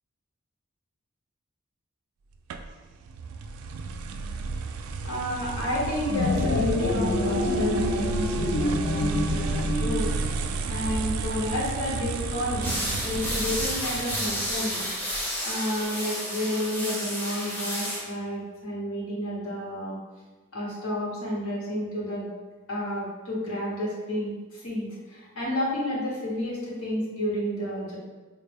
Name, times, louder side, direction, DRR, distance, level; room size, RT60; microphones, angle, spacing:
sound 1, 2.5-15.2, right 4 dB, 80° right, 0.3 m, -32 dB
voice 1, 5.0-10.3 10.7-14.9 15.4-20.0 20.5-22.3 22.7-28.0, left 1 dB, 85° left, -4 dB, 1.2 m, -31 dB
sound 2, 6.0-10.5, left 2 dB, 60° left, 0.4 m, -27 dB
sound 3, 12.6-18.0, equal, 10° left, 0.5 m, -31 dB
4.1 x 2.2 x 3.4 m, 1.3 s
head